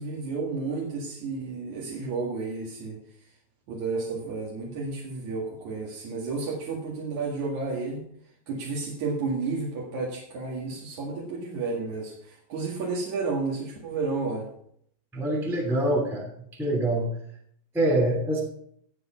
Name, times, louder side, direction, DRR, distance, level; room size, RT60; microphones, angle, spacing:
voice 1, 0.0-3.0 3.7-8.0 8.5-14.5, right 4 dB, 50° right, -4 dB, 2.4 m, -31 dB
voice 2, 15.1-16.3 16.5-17.1 17.7-18.4, right 1 dB, ahead, 0 dB, 0.8 m, -25 dB
15.0 x 8.0 x 4.4 m, 0.67 s
omnidirectional pair, 5.9 m